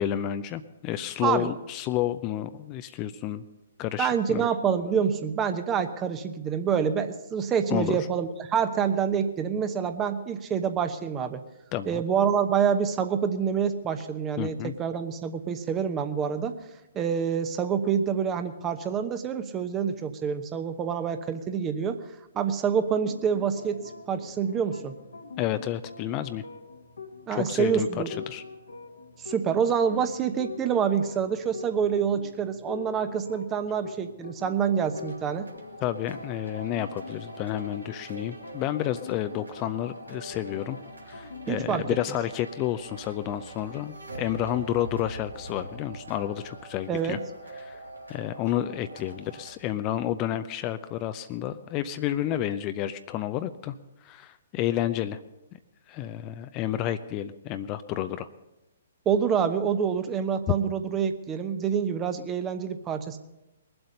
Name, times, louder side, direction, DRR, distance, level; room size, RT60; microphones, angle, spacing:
voice 1, 0.0-3.4 3.8-4.5 7.7-8.0 11.7-12.0 14.4-14.7 25.4-26.4 27.3-28.4 35.8-40.8 41.1-47.2 47.6-47.8 48.1-53.7 54.0-55.2 55.9-58.3 60.5-60.6, left 12 dB, 30° left, 11 dB, 0.5 m, -30 dB
voice 2, 1.2-1.5 4.0-11.4 11.9-16.5 16.9-22.0 22.3-23.8 24.1-24.9 27.3-28.1 29.2-35.5 41.5-41.8 46.9-47.2 59.1-63.2, right 7 dB, 20° right, 9 dB, 0.9 m, -27 dB
sound 1, 23.0-42.4, left 5 dB, 70° left, 1.4 m, -45 dB
sound 2, 34.9-49.6, right 2 dB, 85° right, 2.2 m, -44 dB
21.5 x 7.9 x 5.4 m, 0.94 s
figure-of-eight pair, 125°, 0 cm